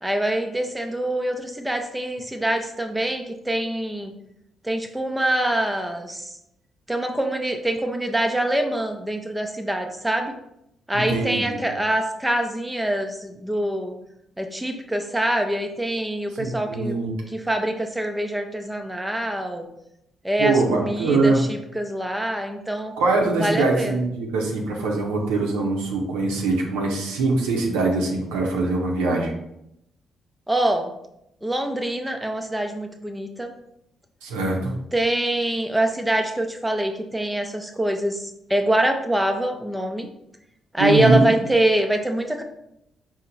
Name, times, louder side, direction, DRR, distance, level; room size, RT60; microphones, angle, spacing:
voice 1, 0.0-4.1 4.6-6.3 6.9-10.3 10.9-13.9 14.4-17.0 17.3-19.7 20.2-23.0 23.4-24.0 30.5-30.9 31.4-33.5 34.9-40.1 40.7-42.4, right 1 dB, 10° right, 4 dB, 0.5 m, -24 dB
voice 2, 10.9-11.7 16.3-17.1 20.4-21.4 23.0-29.3 34.2-34.8 40.8-41.2, right 3 dB, 85° right, 0 dB, 0.7 m, -22 dB
4.4 x 2.1 x 3.9 m, 0.81 s
hypercardioid pair, 50°, 0 cm